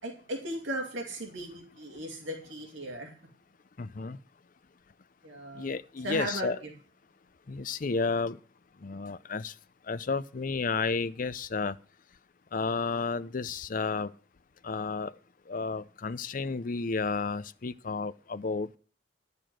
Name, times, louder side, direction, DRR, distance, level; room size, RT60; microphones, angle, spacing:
voice 1, 0.0-3.1 5.2-5.7 6.0-6.7, right 1 dB, 70° right, 2.5 m, -36 dB
voice 2, 3.8-4.2 5.6-6.6 7.5-8.4 8.8-9.5 9.9-11.8 12.5-14.1 14.6-15.1 15.5-18.8, left 4 dB, 40° left, 0.5 m, -32 dB
10.5 x 6.8 x 7.6 m
head